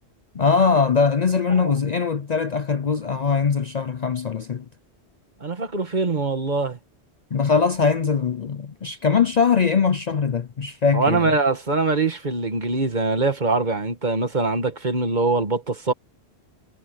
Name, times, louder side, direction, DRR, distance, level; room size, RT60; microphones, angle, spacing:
voice 1, 0.3-4.7 7.3-11.3, left 5 dB, 45° left, 0.6 m, -21 dB
voice 2, 5.4-6.8 10.9-15.9, right 3 dB, 45° right, 1.7 m, -23 dB
omnidirectional pair, 1.1 m